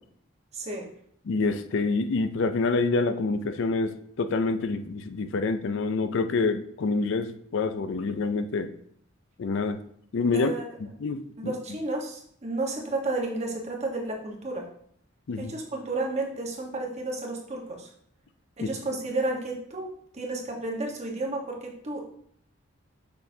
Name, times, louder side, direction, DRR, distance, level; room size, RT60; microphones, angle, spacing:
voice 1, 0.5-0.9 10.3-10.6 11.4-14.7 15.4-17.9 18.6-19.9 20.1-22.0, right 2 dB, 30° right, 0 dB, 1.3 m, -32 dB
voice 2, 1.3-8.7 9.4-9.8 10.1-10.5 11.0-11.5 15.3-15.5 18.6-18.7, left 3 dB, 60° left, 9 dB, 0.4 m, -27 dB
6.6 x 5.9 x 2.8 m, 0.65 s
head